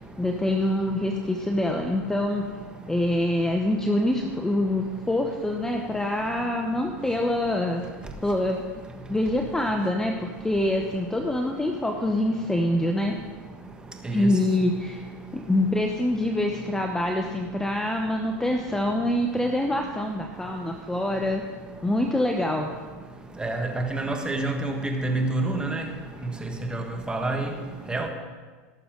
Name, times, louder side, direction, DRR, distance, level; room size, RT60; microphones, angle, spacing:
voice 1, 0.2-2.4 2.9-7.8 8.2-8.6 9.1-13.1 14.1-15.0 15.3-21.4 21.8-22.7, left 1 dB, 5° left, 3 dB, 0.8 m, -25 dB
voice 2, 23.4-25.8 26.7-27.5 27.9-28.1, right 2 dB, 10° right, 3 dB, 1.5 m, -27 dB
17.5 x 6.7 x 3.8 m, 1.4 s
supercardioid pair, 115°, 8 cm